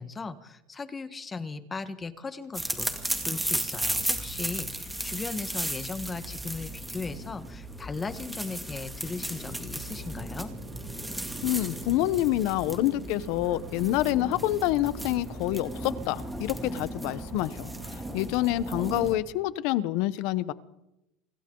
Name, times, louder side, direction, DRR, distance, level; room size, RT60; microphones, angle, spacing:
voice 1, 0.0-10.5, left 4 dB, 15° left, 11 dB, 1.4 m, -37 dB
sound 1, 2.5-19.2, right 1 dB, 5° right, 2.3 m, -35 dB
sound 2, 9.0-18.2, right 9 dB, 60° right, 2.7 m, -51 dB
voice 2, 11.4-20.5, left 15 dB, 60° left, 16 dB, 1.0 m, -27 dB
29.0 x 25.5 x 3.9 m, 0.91 s
supercardioid pair, 150°, 0 cm